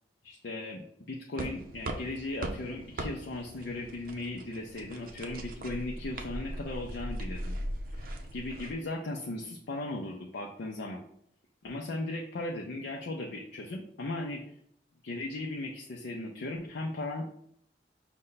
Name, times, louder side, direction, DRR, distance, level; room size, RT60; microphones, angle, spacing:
voice 1, 0.2-7.6 7.9-11.0 11.6-14.4 15.0-17.3, left 2 dB, 75° left, 1 dB, 0.5 m, -37 dB
sound 1, 1.4-8.7, right 1 dB, 55° right, 0.5 m, -39 dB
5.3 x 2.1 x 3.9 m, 0.68 s
head